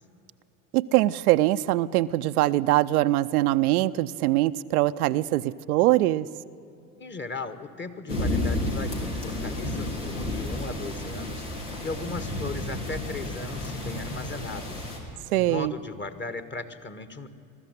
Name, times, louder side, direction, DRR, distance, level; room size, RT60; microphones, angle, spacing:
voice 1, 0.7-6.3 15.3-15.7, right 16 dB, 70° right, 12 dB, 0.6 m, -23 dB
voice 2, 7.0-17.3, left 3 dB, 25° left, 11 dB, 1.6 m, -37 dB
sound 1, 8.1-15.0, left 1 dB, 85° left, 3.4 m, -31 dB
20.5 x 13.5 x 9.8 m, 2.6 s
hypercardioid pair, 65°, 45 cm